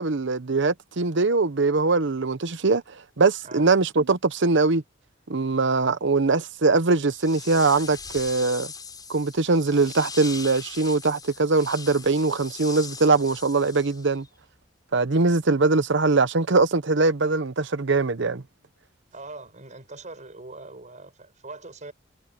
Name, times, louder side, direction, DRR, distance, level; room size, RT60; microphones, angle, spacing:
voice 1, 0.0-2.8 3.2-4.8 5.3-8.7 9.1-14.2 14.9-18.4, right 3 dB, 65° right, 0.9 m, -22 dB
sound 1, 7.0-14.3, left 5 dB, 20° left, 5.3 m, -40 dB
voice 2, 19.1-21.9, right 3 dB, 40° right, 6.0 m, -42 dB
head